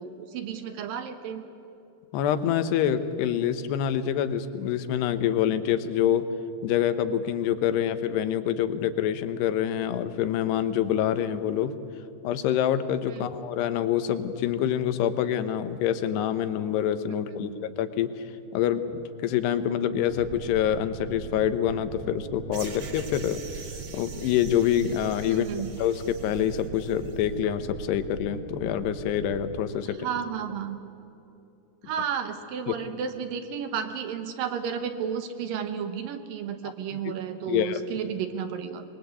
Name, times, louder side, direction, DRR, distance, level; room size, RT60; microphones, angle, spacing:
voice 1, 0.0-1.4 13.1-13.2 17.4-17.7 25.3-25.7 30.0-30.8 31.8-38.8, right 7 dB, 65° right, 8 dB, 2.6 m, -32 dB
voice 2, 2.1-6.3 6.6-11.8 12.2-18.1 18.5-23.4 23.7-25.5 25.8-30.1 32.7-32.8 36.6-37.2 37.5-37.8, left 10 dB, 85° left, 11 dB, 3.1 m, -26 dB
sound 1, 20.1-29.6, right 8 dB, 85° right, 1.8 m, -41 dB
sound 2, 22.5-27.2, right 5 dB, 45° right, 1.7 m, -46 dB
23.5 x 22.0 x 8.3 m, 2.8 s
omnidirectional pair, 4.7 m